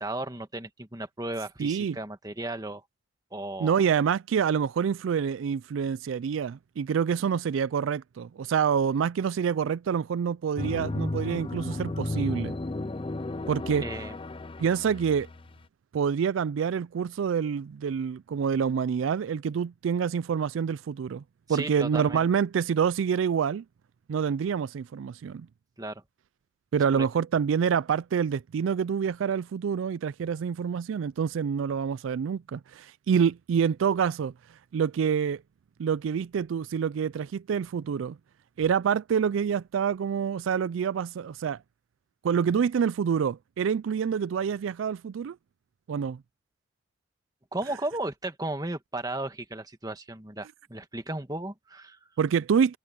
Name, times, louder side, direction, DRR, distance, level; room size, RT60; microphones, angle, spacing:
voice 1, 0.0-2.8 3.3-3.8 13.8-14.2 21.5-22.2 25.8-26.0 26.9-27.1 47.5-52.0, right 2 dB, 20° right, 1.5 m, -35 dB
voice 2, 1.6-2.0 3.6-12.6 13.5-13.8 14.6-15.3 15.9-21.2 21.5-23.6 24.1-25.5 26.7-34.3 34.7-35.4 35.8-38.2 38.6-41.6 42.2-45.4 45.9-46.2 52.2-52.8, right 7 dB, 80° right, 0.3 m, -27 dB
sound 1, 10.6-15.6, left 2 dB, 25° left, 0.5 m, -34 dB
head